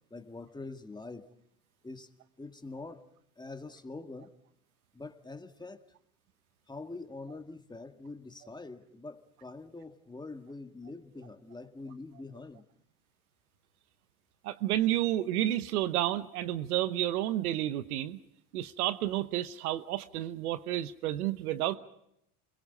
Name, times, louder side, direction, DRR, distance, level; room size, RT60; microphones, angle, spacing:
voice 1, 0.1-1.3 1.8-2.1 2.4-3.1 3.4-4.3 4.9-5.9 6.7-12.6, left 3 dB, 10° left, 7 dB, 1.9 m, -44 dB
voice 2, 14.4-18.2 18.5-21.8, right 13 dB, 90° right, 13 dB, 1.0 m, -30 dB
28.5 x 22.0 x 5.4 m, 0.77 s
supercardioid pair, 90°, 43 cm